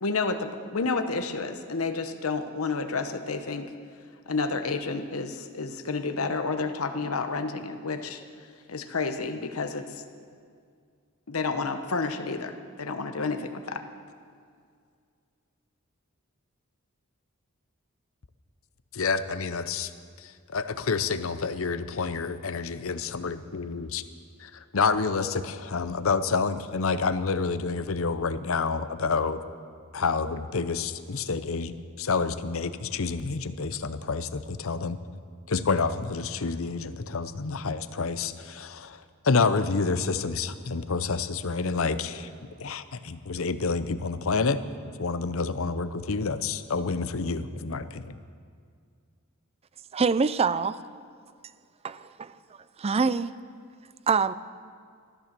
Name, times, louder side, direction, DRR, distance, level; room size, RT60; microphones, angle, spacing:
voice 1, 0.0-3.7 4.3-8.2 8.7-10.0 11.3-13.8, left 4 dB, 90° left, 1.1 m, -30 dB
voice 2, 18.9-19.9 20.2-24.0 24.4-29.4 29.9-35.0 35.5-42.3 42.6-44.6 45.0-48.2, left 4 dB, 70° left, 0.7 m, -28 dB
voice 3, 49.9-50.7 51.8-52.3 52.8-53.3 54.1-54.3, right 5 dB, 30° right, 0.4 m, -24 dB
14.0 x 14.0 x 6.7 m
head